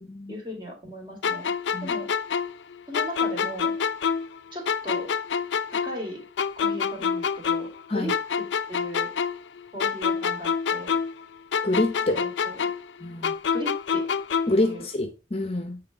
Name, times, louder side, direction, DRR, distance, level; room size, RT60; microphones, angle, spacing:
voice 1, 0.3-1.5 1.8-2.1 2.9-3.7 4.5-5.1 5.8-6.2 6.6-9.1 9.7-11.0 12.1-12.7 13.5-14.1 14.6-14.9, equal, 25° right, 2.5 m, -37 dB
sound 1, 1.2-4.4 4.7-7.8 8.1-11.2 11.5-14.7, left 6 dB, 90° left, 0.5 m, -27 dB
voice 2, 11.6-12.2 13.0-13.3 14.5-15.8, left 1 dB, 35° left, 0.7 m, -26 dB
8.5 x 3.3 x 4.9 m
head